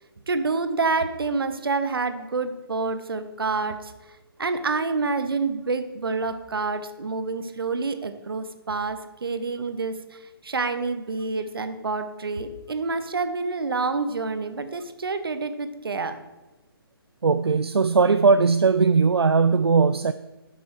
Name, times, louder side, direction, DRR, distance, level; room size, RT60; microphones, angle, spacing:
voice 1, 0.3-3.9 4.4-16.2, right 4 dB, 65° right, 10 dB, 0.9 m, -28 dB
voice 2, 17.2-20.1, right 4 dB, 80° right, 12 dB, 0.4 m, -19 dB
11.0 x 6.1 x 4.7 m, 1.1 s
figure-of-eight pair, 140°, 13 cm